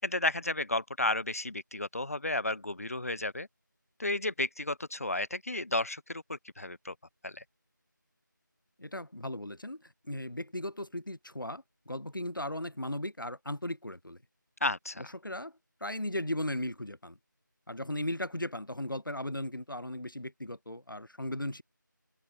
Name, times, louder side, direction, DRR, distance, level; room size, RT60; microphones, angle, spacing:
voice 1, 0.0-3.5 4.0-6.9 7.2-7.4 14.6-15.1, left 2 dB, 45° left, 4.9 m, -32 dB
voice 2, 8.8-14.2 15.0-17.2 17.7-21.6, left 1 dB, 80° left, 5.8 m, -37 dB
figure-of-eight pair, 175°, 11 cm